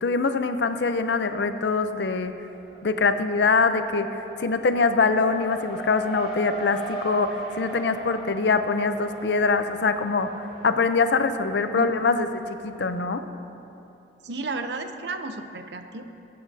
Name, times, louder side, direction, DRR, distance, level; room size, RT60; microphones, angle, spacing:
voice 1, 0.0-2.3 2.8-10.3 10.6-13.2, left 4 dB, 80° left, 9 dB, 0.6 m, -23 dB
Race car auto racing, 0.5-1.3 1.6-12.9, right 1 dB, 5° right, 2.6 m, -39 dB
voice 2, 11.7-12.4 14.2-16.0, right 3 dB, 75° right, 7 dB, 0.7 m, -33 dB
20.5 x 8.5 x 2.7 m, 2.8 s
head